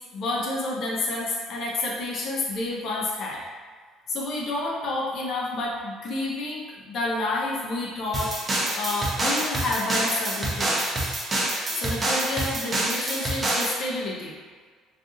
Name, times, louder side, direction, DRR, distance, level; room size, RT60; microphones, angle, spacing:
voice 1, 0.1-3.4 4.1-8.3 8.7-10.9 11.8-14.4, left 2 dB, 55° left, -3 dB, 0.6 m, -29 dB
sound 1, 8.1-13.8, right 1 dB, 30° right, 0.6 m, -27 dB
2.5 x 2.4 x 3.7 m, 1.5 s
cardioid pair, 110°, 0 cm